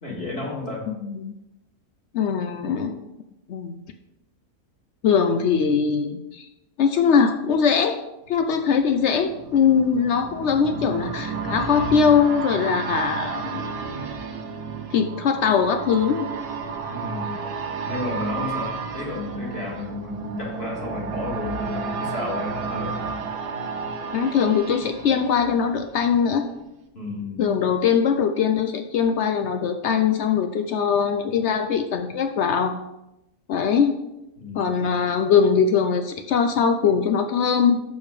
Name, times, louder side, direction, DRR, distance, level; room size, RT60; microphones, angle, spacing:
voice 1, 0.0-0.9 16.9-17.4 17.9-23.2 26.9-27.6 34.4-35.0, left 2 dB, 40° left, -4 dB, 2.0 m, -32 dB
voice 2, 0.9-1.4 2.1-3.0 3.5-3.7 5.0-6.5 6.8-8.0 8.3-13.8 14.9-16.3 24.1-26.5 27.4-32.8 33.5-33.9 34.6-37.8, left 6 dB, 80° left, 7 dB, 0.6 m, -21 dB
sound 1, 8.4-26.2 26.5-26.6, right 5 dB, 85° right, 1.5 m, -32 dB
6.6 x 5.4 x 5.0 m, 0.90 s
omnidirectional pair, 1.7 m